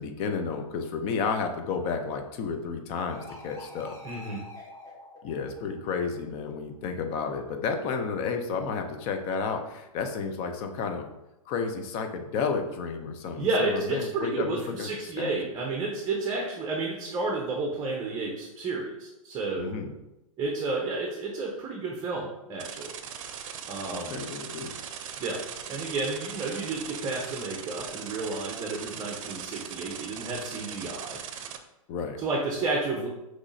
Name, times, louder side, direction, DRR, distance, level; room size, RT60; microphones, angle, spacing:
voice 1, 0.0-4.0 5.2-11.1 11.5-14.9 15.2-15.3 19.6-19.9 23.9-24.8 31.9-32.2, left 5 dB, 35° left, 5 dB, 0.6 m, -31 dB
sound 1, 3.1-6.4, left 2 dB, 15° left, 1.2 m, -47 dB
voice 2, 4.0-4.4 13.4-19.7 20.4-22.9 23.7-24.2 25.2-25.4 25.7-31.2 32.2-33.1, right 3 dB, 20° right, -1 dB, 0.7 m, -31 dB
sound 2, 22.6-31.6, right 8 dB, 60° right, 0.6 m, -39 dB
6.0 x 3.1 x 2.7 m, 0.94 s
hypercardioid pair, 130°, 18 cm